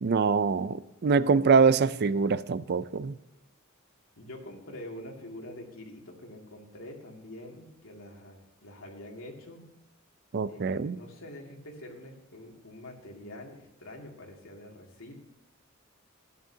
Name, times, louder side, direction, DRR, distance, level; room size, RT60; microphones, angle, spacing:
voice 1, 0.0-3.1 10.3-11.0, right 5 dB, 50° right, 0.4 m, -24 dB
voice 2, 4.2-9.8 10.5-15.2, left 1 dB, 90° left, 2.4 m, -45 dB
12.5 x 11.0 x 2.8 m
head